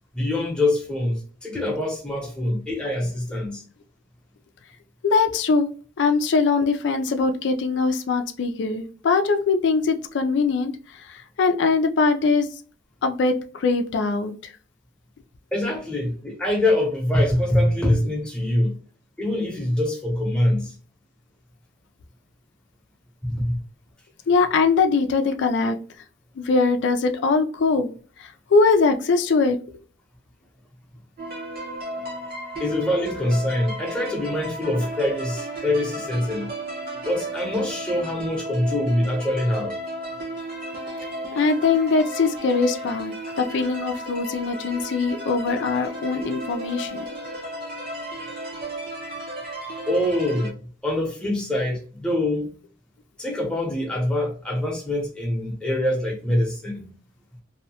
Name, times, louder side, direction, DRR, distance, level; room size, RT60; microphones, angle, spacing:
voice 1, 0.1-3.6 15.5-18.8 19.2-20.7 23.2-23.6 32.6-36.5 37.0-39.8 49.9-50.6 50.8-52.5 53.2-56.9, left 1 dB, 5° left, 0.8 m, -24 dB
voice 2, 5.0-5.7 6.0-10.7 11.1-12.5 13.0-14.3 24.3-25.8 26.4-27.9 28.5-29.6 41.3-47.1, left 4 dB, 70° left, 0.4 m, -21 dB
sound 1, 31.2-50.5, right 1 dB, 50° right, 1.1 m, -34 dB
2.7 x 2.1 x 2.7 m
head